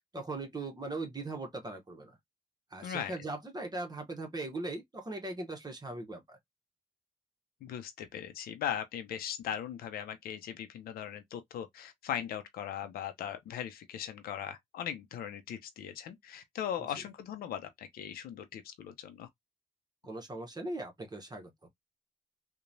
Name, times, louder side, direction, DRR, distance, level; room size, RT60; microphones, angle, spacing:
voice 1, 0.1-2.2 2.7-6.4 16.8-17.0 20.0-21.7, right 2 dB, 25° right, 0.9 m, -40 dB
voice 2, 2.8-3.1 7.6-19.3, left 9 dB, 80° left, 0.5 m, -39 dB
2.9 x 2.2 x 2.5 m
supercardioid pair, 55°, 15 cm